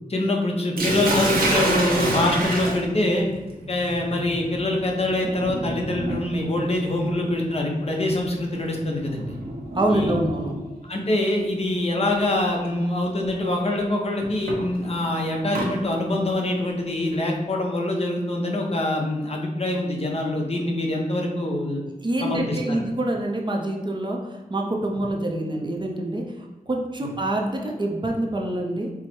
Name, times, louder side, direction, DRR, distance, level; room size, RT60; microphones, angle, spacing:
voice 1, 0.1-3.3 3.7-9.3 9.9-10.2 10.9-21.8 22.2-22.8, left 1 dB, 45° left, 0 dB, 0.8 m, -24 dB
Sink (filling or washing), 0.8-10.7 11.8-12.1 12.6-12.7 14.2-15.7, right 1 dB, 90° right, 0.9 m, -29 dB
voice 2, 9.7-10.5 22.0-28.9, right 1 dB, 35° right, 0 dB, 0.6 m, -26 dB
4.7 x 2.1 x 4.3 m, 1.2 s
wide cardioid pair, 100°, 15 cm